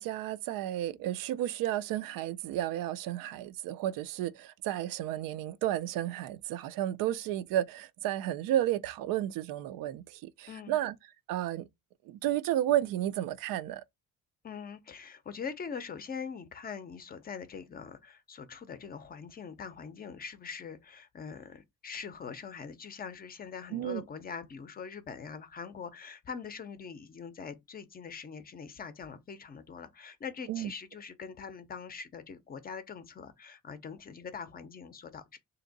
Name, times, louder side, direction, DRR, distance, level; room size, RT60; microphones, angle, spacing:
voice 1, 0.0-10.9 11.3-11.7 12.1-13.8 23.7-24.0 30.5-30.7, right 12 dB, 90° right, 0.5 m, -32 dB
voice 2, 10.5-10.8 14.4-35.4, left 6 dB, 30° left, 0.5 m, -43 dB
3.4 x 2.8 x 3.9 m
cardioid pair, 150°, 33 cm